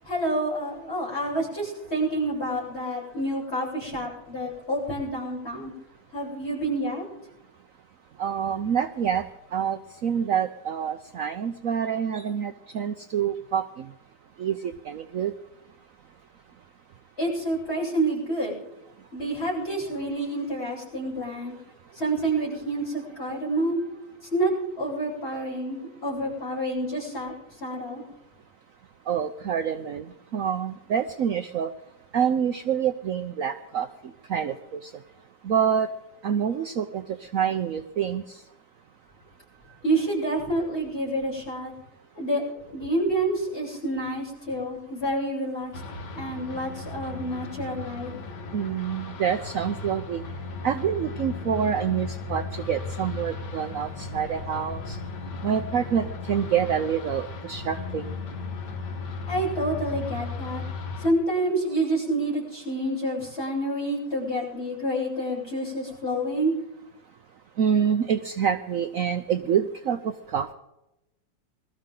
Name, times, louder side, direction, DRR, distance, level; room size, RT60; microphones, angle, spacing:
voice 1, 0.0-5.7 6.1-7.1 17.2-18.6 19.1-21.6 21.9-23.8 24.3-27.4 27.6-28.0 39.8-41.7 42.2-45.7 46.1-48.1 59.3-60.6 61.0-66.5, right 1 dB, 35° left, -5 dB, 8.0 m, -28 dB
voice 2, 8.2-9.2 9.5-13.9 14.4-15.3 29.1-30.1 30.3-31.7 32.1-33.9 34.3-34.9 35.4-35.9 36.2-38.4 48.5-50.2 50.6-55.0 55.4-58.1 67.6-70.5, right 8 dB, 60° right, 9 dB, 1.0 m, -27 dB
sound 1, 45.7-61.1, left 4 dB, 75° left, 2.1 m, -36 dB
22.0 x 13.5 x 3.8 m, 0.89 s
omnidirectional pair, 1.9 m